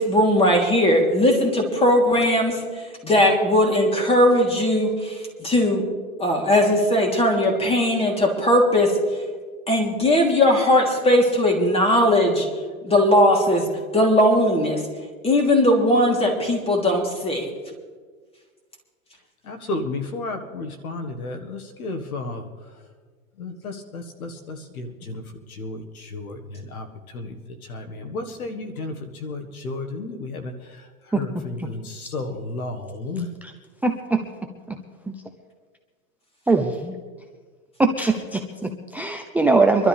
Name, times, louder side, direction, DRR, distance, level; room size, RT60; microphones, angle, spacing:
voice 1, 0.0-2.6 3.0-5.8 6.2-9.0 9.7-12.5 12.8-13.7 13.9-14.8 15.2-17.5, left 1 dB, 15° left, 0 dB, 3.3 m, -19 dB
voice 2, 19.4-22.5 23.4-25.2 25.5-27.4 27.6-33.3, left 2 dB, 85° left, 6 dB, 1.8 m, -33 dB
voice 3, 33.8-34.2 34.7-34.8 35.1-35.2 36.5-37.0 37.8-39.9, right 3 dB, 5° right, 3 dB, 0.6 m, -21 dB
25.0 x 12.5 x 3.5 m, 1.5 s
hypercardioid pair, 120°, 42 cm